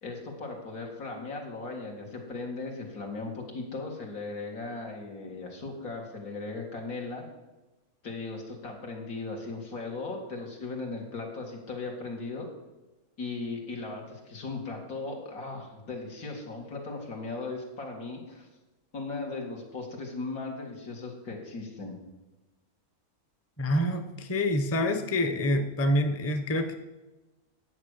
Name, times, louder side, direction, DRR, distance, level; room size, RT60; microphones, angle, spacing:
voice 1, 0.0-7.2 8.0-12.5 13.2-18.5 18.9-22.0, left 3 dB, 80° left, 0 dB, 2.5 m, -37 dB
voice 2, 23.6-26.7, left 1 dB, 15° left, 7 dB, 0.5 m, -27 dB
9.9 x 7.9 x 6.4 m, 1.1 s
omnidirectional pair, 1.5 m